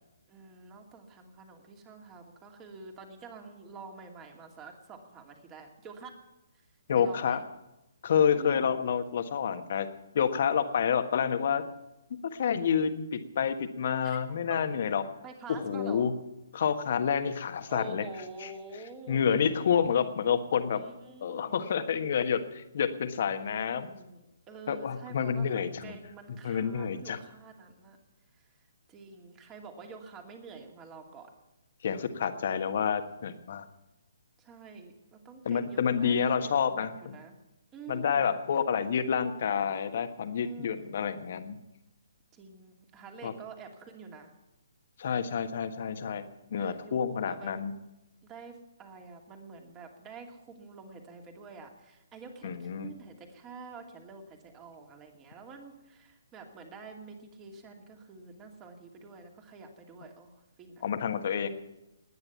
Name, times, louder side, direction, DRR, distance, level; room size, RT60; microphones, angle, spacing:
voice 1, 0.3-6.1 7.0-7.4 8.3-8.7 14.0-14.4 15.2-16.1 17.7-19.8 20.7-21.7 23.4-28.0 28.9-31.3 34.4-37.3 37.7-38.3 38.5-38.6 40.3-41.0 42.3-44.3 46.6-47.5 48.2-60.8, right 4 dB, 20° right, 3 dB, 2.6 m, -48 dB
voice 2, 6.9-7.4 8.0-9.9 10.1-11.6 12.3-15.0 15.5-16.1 16.5-18.0 18.4-18.5 19.1-20.8 21.2-23.9 24.7-26.0 26.4-27.2 31.8-33.6 35.4-37.1 37.9-41.6 43.2-43.3 45.0-46.2 46.5-47.7 52.4-52.9 60.8-61.5, left 7 dB, 50° left, 8 dB, 1.5 m, -28 dB
19.5 x 9.7 x 7.1 m, 0.95 s
figure-of-eight pair, 135°, 0 cm